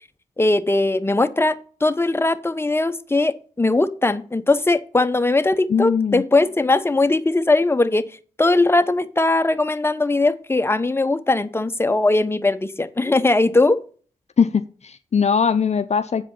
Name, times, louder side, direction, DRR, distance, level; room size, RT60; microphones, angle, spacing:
voice 1, 0.4-8.1 8.4-13.8, left 2 dB, 15° left, 11 dB, 0.9 m, -19 dB
voice 2, 5.7-6.2 14.4-16.2, left 6 dB, 50° left, 11 dB, 0.6 m, -20 dB
7.8 x 4.9 x 7.3 m, 0.41 s
supercardioid pair, 45°, 15 cm